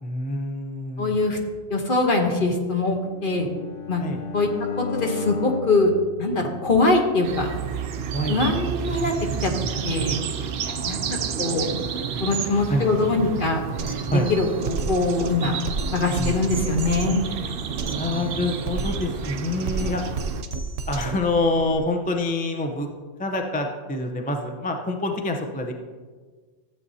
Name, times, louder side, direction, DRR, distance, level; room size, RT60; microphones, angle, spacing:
voice 1, 0.0-1.1 4.0-4.2 8.1-8.4 10.6-11.4 12.3-12.9 14.1-14.3 16.2-16.6 17.8-20.0 20.9-22.9 23.2-25.7, left 2 dB, 10° left, 3 dB, 0.5 m, -27 dB
voice 2, 1.0-1.4 1.7-3.5 3.9-4.0 4.3-4.5 4.8-5.9 6.2-7.5 8.3-9.1 9.4-9.5 9.8-10.2 10.8-11.0 11.4-11.7 12.2-13.6 14.3-15.6 15.9-17.2, left 3 dB, 45° left, 2 dB, 1.2 m, -22 dB
Bowed string instrument, 3.0-7.2, left 5 dB, 80° left, 1.1 m, -35 dB
sound 1, 7.2-20.4, right 7 dB, 65° right, 0.7 m, -30 dB
Drum kit, 13.8-21.8, right 4 dB, 90° right, 1.1 m, -32 dB
13.5 x 7.9 x 2.7 m, 1.5 s
omnidirectional pair, 1.3 m